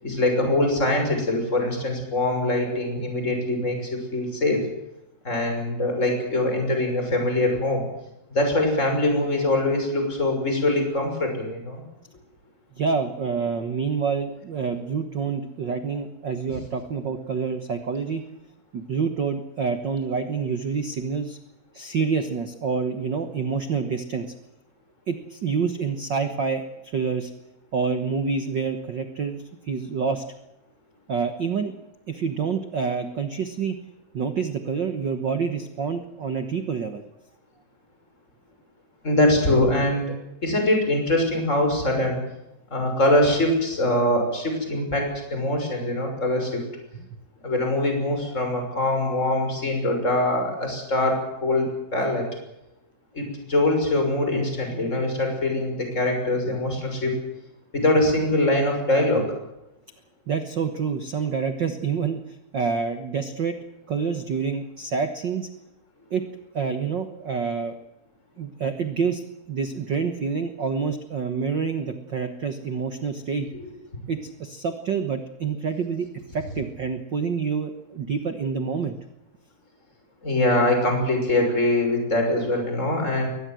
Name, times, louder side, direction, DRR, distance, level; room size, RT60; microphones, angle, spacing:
voice 1, 0.0-4.6 5.2-7.9 8.3-11.8 39.0-40.1 40.4-42.2 42.7-46.6 47.4-52.3 53.1-57.2 57.7-59.3 80.2-83.3, left 1 dB, 20° left, 4 dB, 6.5 m, -23 dB
voice 2, 12.8-18.2 18.7-21.4 21.7-24.3 25.1-27.3 27.7-30.2 31.1-31.7 32.1-33.8 34.1-37.0 46.9-47.1 60.3-63.6 63.9-65.5 66.1-66.3 66.5-67.7 68.4-69.2 69.5-73.5 74.1-79.0, right 5 dB, 65° right, 8 dB, 1.1 m, -27 dB
23.0 x 20.0 x 7.8 m, 0.89 s
omnidirectional pair, 4.2 m